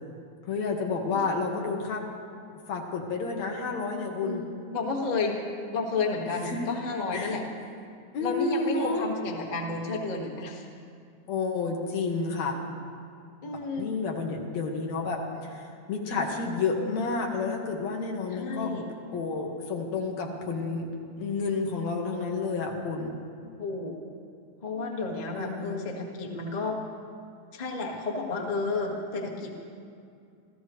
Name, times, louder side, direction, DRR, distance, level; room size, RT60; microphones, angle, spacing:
voice 1, 0.5-2.0 2.7-4.4 6.5-6.6 7.1-7.4 8.1-9.0 11.3-12.5 13.8-15.2 15.5-18.7 19.1-20.9 21.2-23.1 25.3-25.8, left 4 dB, 65° left, 1 dB, 2.9 m, -30 dB
voice 2, 4.7-5.4 5.7-7.4 8.2-10.6 13.4-13.9 18.3-18.9 23.6-24.0 24.6-26.8 27.5-29.6, left 3 dB, 25° left, -1 dB, 1.0 m, -31 dB
27.5 x 16.0 x 3.1 m, 2.4 s
omnidirectional pair, 3.5 m